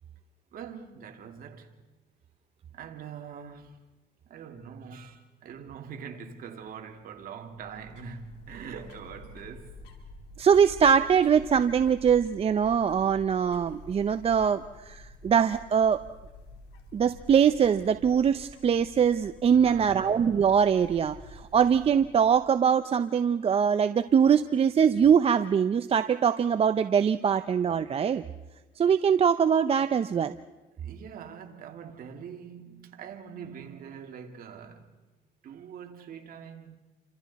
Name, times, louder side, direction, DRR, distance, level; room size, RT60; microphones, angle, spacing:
voice 1, 0.5-1.7 2.7-3.8 4.3-9.8 19.5-20.2 30.8-34.9 35.4-36.8, right 7 dB, 60° right, 2.5 m, -43 dB
sound 1, 7.4-22.6, left 1 dB, 90° left, 3.6 m, -49 dB
voice 2, 10.4-16.0 16.9-28.2 28.8-30.4, right 7 dB, 35° right, 0.6 m, -23 dB
29.0 x 26.0 x 4.2 m
cardioid pair, 110°, 17 cm